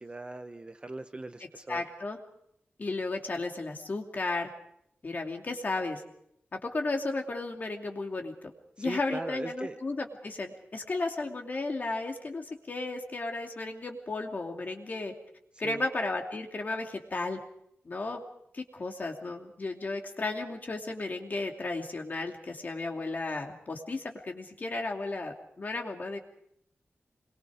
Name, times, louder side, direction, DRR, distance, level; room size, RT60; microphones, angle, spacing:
voice 1, 0.0-1.8 8.8-9.8 15.6-15.9, right 2 dB, 25° right, 8 dB, 1.1 m, -39 dB
voice 2, 1.7-2.2 2.8-4.5 5.0-6.0 6.5-8.5 8.8-15.1 15.6-17.4 17.8-18.2 18.5-26.2, left 3 dB, 40° left, 3 dB, 2.7 m, -34 dB
26.0 x 22.5 x 5.1 m, 0.71 s
wide cardioid pair, 165°, 4 cm